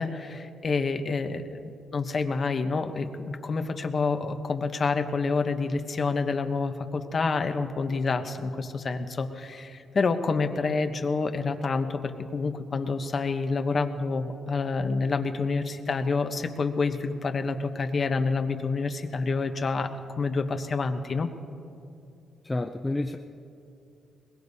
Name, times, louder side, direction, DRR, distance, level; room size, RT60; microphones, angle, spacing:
voice 1, 0.0-1.6 1.9-19.9 20.2-21.3, left 4 dB, 35° left, 7 dB, 0.8 m, -28 dB
voice 2, 22.4-23.2, left 2 dB, 10° left, 5 dB, 0.4 m, -29 dB
22.0 x 20.5 x 2.7 m, 2.6 s
wide cardioid pair, 170°, 0 cm